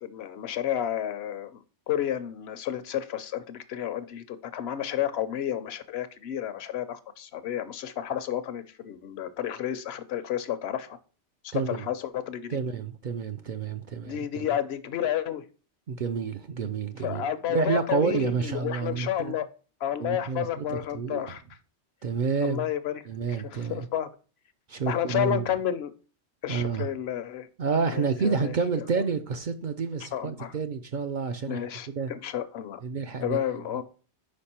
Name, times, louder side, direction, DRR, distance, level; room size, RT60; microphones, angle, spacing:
voice 1, 0.0-11.0 11.4-12.6 14.0-15.4 17.0-19.5 19.8-21.4 22.4-23.0 23.3-24.1 24.9-25.9 26.4-27.5 27.9-28.8 30.1-30.5 31.5-32.8 33.2-33.8, left 10 dB, 70° left, 0.8 m, -31 dB
voice 2, 11.5-11.8 12.5-14.5 15.9-17.2 17.5-19.4 20.0-21.3 22.0-22.6 23.1-23.9 24.7-25.5 26.5-26.9 27.6-31.6 31.9-32.1 32.8-33.4, right 5 dB, 60° right, 0.6 m, -29 dB
5.3 x 4.7 x 4.3 m
omnidirectional pair, 1.1 m